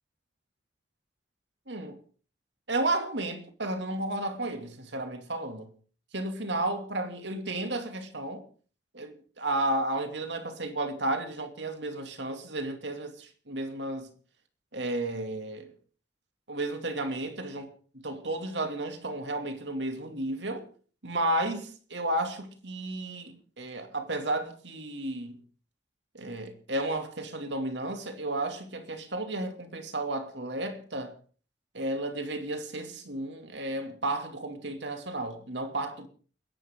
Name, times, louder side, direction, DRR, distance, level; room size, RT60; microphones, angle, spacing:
voice 1, 1.7-2.0 2.7-5.7 6.1-8.4 8.9-14.1 14.7-15.7 16.5-17.7 18.0-20.6 21.0-25.4 26.1-31.1 31.7-36.1, right 2 dB, 70° right, 2.6 m, -33 dB
30.0 x 11.0 x 3.8 m
head